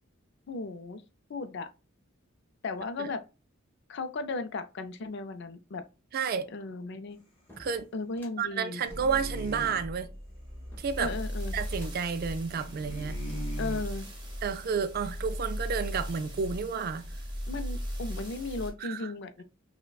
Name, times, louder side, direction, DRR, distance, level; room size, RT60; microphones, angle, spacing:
voice 1, 0.5-1.0 1.3-1.7 2.6-3.2 3.9-5.8 6.5-7.2 7.9-8.8 11.0-11.5 13.6-14.1 17.5-19.4, left 3 dB, 55° left, 0.4 m, -36 dB
voice 2, 6.1-6.5 7.6-7.9 8.4-10.1 10.8-11.1 11.5-13.2 14.4-17.0 18.8-19.1, right 6 dB, 45° right, 0.3 m, -31 dB
sound 1, 7.5-8.4 8.8-10.2 10.7-11.2 11.7-12.1 12.5-12.7 13.3-14.2, left 1 dB, 10° left, 0.9 m, -57 dB
sound 2, 8.7-9.8 12.5-13.9, equal, 30° left, 1.4 m, -42 dB
sound 3, 8.9-18.7, equal, 20° right, 1.2 m, -37 dB
5.6 x 2.2 x 2.3 m
head